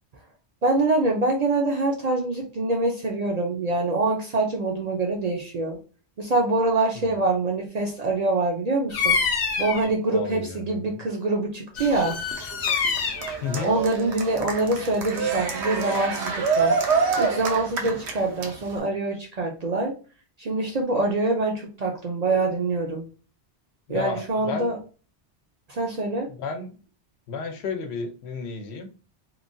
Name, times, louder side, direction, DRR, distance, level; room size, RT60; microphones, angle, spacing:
voice 1, 0.6-5.8 6.2-9.2 9.6-12.2 13.6-16.8 17.2-19.9 20.4-23.1 23.9-24.8 25.7-26.3, right 2 dB, 50° right, 1 dB, 0.5 m, -25 dB
voice 2, 6.9-7.3 10.1-11.0 13.4-13.8 23.9-24.7 26.3-26.7 27.3-28.9, left 5 dB, 80° left, 6 dB, 0.9 m, -32 dB
Bird vocalization bird call bird song, 8.9-9.9 11.7-13.4, left 5 dB, 55° left, 0.5 m, -26 dB
Cheering, 11.8-18.8, right 5 dB, 85° right, 0.9 m, -27 dB
3.0 x 2.2 x 2.5 m, 0.36 s
omnidirectional pair, 1.1 m